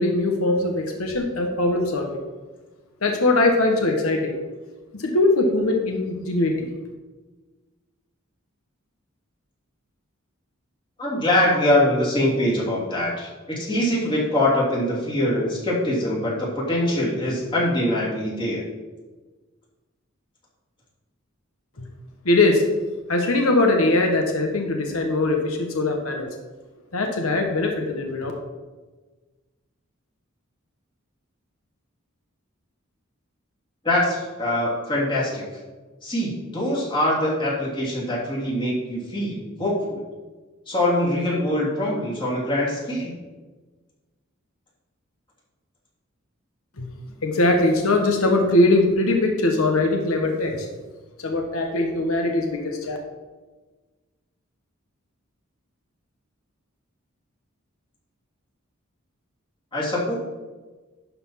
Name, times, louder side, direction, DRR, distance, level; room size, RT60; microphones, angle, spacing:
voice 1, 0.0-2.2 3.0-4.3 4.9-6.7 21.8-21.9 22.2-22.6 23.1-26.3 26.9-28.3 46.8-46.9 47.2-50.7 51.2-53.0, left 2 dB, 90° left, 3 dB, 1.2 m, -21 dB
voice 2, 11.0-18.6 33.8-35.5 36.0-40.0 40.7-43.1 59.7-60.1, left 1 dB, 25° left, -5 dB, 2.8 m, -23 dB
11.5 x 4.3 x 5.7 m, 1.3 s
head